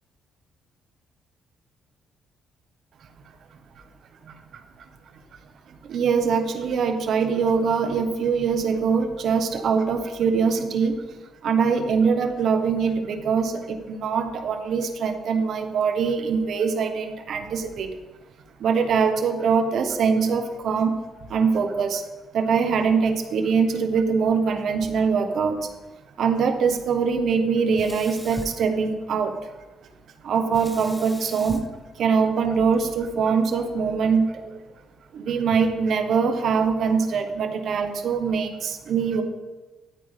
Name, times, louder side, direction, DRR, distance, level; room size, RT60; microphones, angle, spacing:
voice 1, 4.3-4.6 5.7-11.0 11.4-17.9 18.6-20.9 21.3-22.0 22.3-25.7 26.2-29.4 30.2-31.7 32.0-34.6 35.1-39.2, right 5 dB, 65° right, 6 dB, 1.3 m, -23 dB
Sink (filling or washing), 27.7-29.4 30.5-32.8, left 1 dB, 5° left, 1.0 m, -41 dB
13.0 x 8.9 x 3.5 m, 1.2 s
cardioid pair, 90°, 0 cm